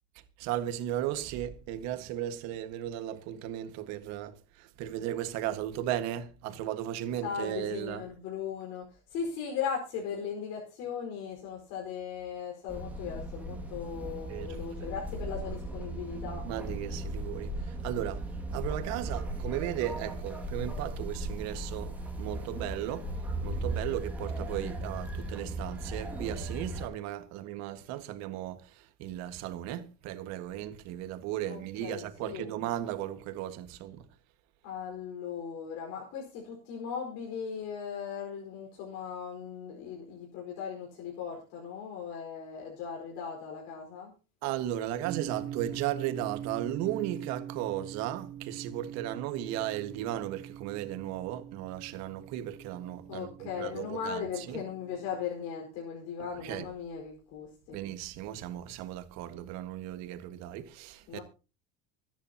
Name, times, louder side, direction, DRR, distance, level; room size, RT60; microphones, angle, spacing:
voice 1, 0.4-8.0 14.3-14.9 16.4-18.3 18.5-23.1 23.4-34.1 44.4-54.6 56.2-56.7 57.7-61.2, right 12 dB, 60° right, 1.7 m, -36 dB
voice 2, 7.2-16.4 31.5-32.5 34.6-44.1 53.1-57.8 61.1-61.2, left 7 dB, 65° left, 4.8 m, -38 dB
sound 1, 12.7-26.9, right 1 dB, 5° right, 2.2 m, -37 dB
sound 2, 45.0-55.2, right 10 dB, 85° right, 2.3 m, -43 dB
24.5 x 10.5 x 2.9 m
cardioid pair, 170°, 30 cm